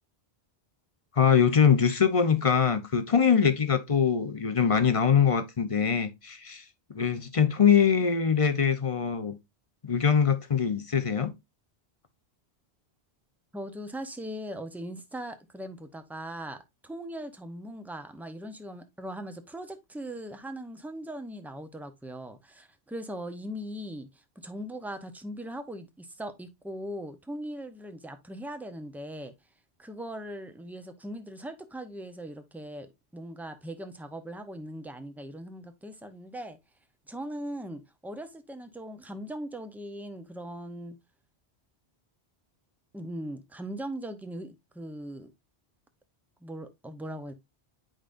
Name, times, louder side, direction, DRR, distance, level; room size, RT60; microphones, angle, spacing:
voice 1, 1.1-6.6 6.9-9.4 9.8-11.3, left 7 dB, 35° left, 0.7 m, -23 dB
voice 2, 13.5-29.3 29.8-32.9 33.1-36.6 37.1-41.0 42.9-45.3 46.4-47.3, right 1 dB, ahead, 0.6 m, -39 dB
8.8 x 5.0 x 2.5 m
omnidirectional pair, 1.1 m